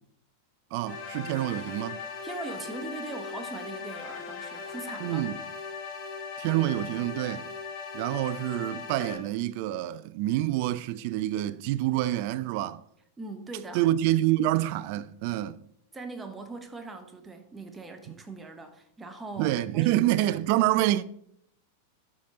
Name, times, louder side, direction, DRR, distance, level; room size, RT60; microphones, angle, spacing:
voice 1, 0.7-2.0 5.0-5.4 6.4-7.5 7.9-12.8 13.7-15.6 18.1-18.2 19.4-21.0, right 14 dB, 45° right, 0.3 m, -27 dB
sound 1, 0.9-9.2, left 5 dB, 40° left, 1.9 m, -39 dB
voice 2, 2.2-5.3 13.2-13.8 15.9-20.0, right 3 dB, 15° right, 0.9 m, -40 dB
12.5 x 5.0 x 2.8 m
figure-of-eight pair, 90°, 0 cm